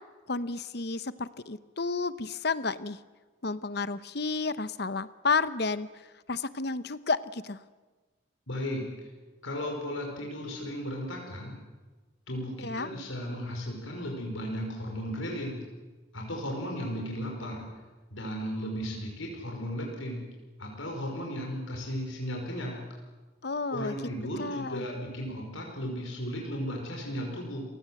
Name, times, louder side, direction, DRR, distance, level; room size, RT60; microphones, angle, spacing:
voice 1, 0.3-3.0 3.4-5.9 6.3-7.6 12.6-12.9 23.4-24.0 24.4-24.9, left 4 dB, 55° left, 14 dB, 0.9 m, -31 dB
voice 2, 8.5-8.8 9.4-11.6 12.3-15.6 16.1-17.6 18.1-20.2 20.6-22.8 23.7-27.6, equal, 80° left, 0 dB, 5.6 m, -35 dB
29.0 x 18.5 x 7.8 m, 1.3 s
head